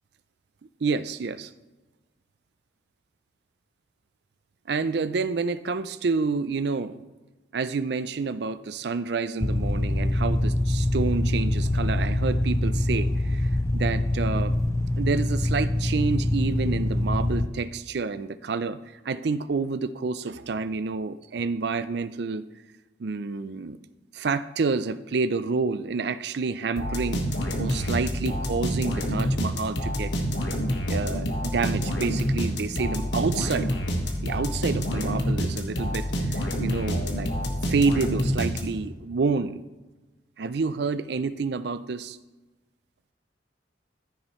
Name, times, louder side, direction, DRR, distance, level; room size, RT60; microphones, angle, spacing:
voice 1, 0.8-1.5 4.7-7.0 7.5-14.6 15.0-18.8 19.0-22.4 23.0-23.8 24.1-27.2 27.6-30.1 30.9-33.7 34.2-37.3 37.7-39.6 40.4-42.2, right 4 dB, 60° right, 13 dB, 0.4 m, -28 dB
sound 1, 9.4-17.5, left 1 dB, 15° left, 0.4 m, -24 dB
sound 2, 26.8-39.0, equal, 70° left, 1.4 m, -27 dB
14.5 x 6.4 x 3.1 m, 1.2 s
head